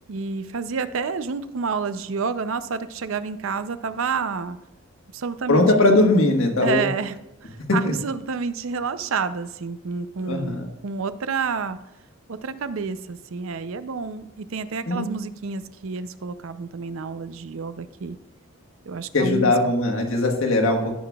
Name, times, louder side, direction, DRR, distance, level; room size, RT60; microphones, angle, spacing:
voice 1, 0.1-4.6 5.1-5.8 6.6-7.2 7.4-11.8 12.3-18.2 18.9-19.5, right 5 dB, 75° right, 13 dB, 0.5 m, -29 dB
voice 2, 5.5-6.8 7.8-7.9 10.2-10.7 14.9-15.1 19.1-20.9, left 2 dB, 75° left, 2 dB, 1.4 m, -20 dB
16.5 x 5.8 x 2.3 m, 0.99 s
head